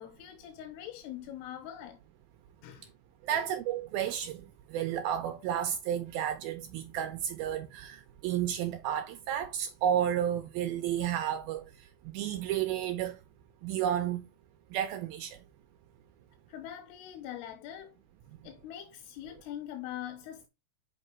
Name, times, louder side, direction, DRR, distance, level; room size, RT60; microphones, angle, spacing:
voice 1, 0.0-2.0 2.6-2.9 3.3-3.4 16.5-18.0 18.4-20.5, left 11 dB, 80° left, 2.8 m, -43 dB
voice 2, 3.2-11.6 12.1-13.2 13.6-14.3 14.7-15.4, right 10 dB, 80° right, 2.1 m, -32 dB
6.4 x 5.5 x 4.4 m
omnidirectional pair, 5.1 m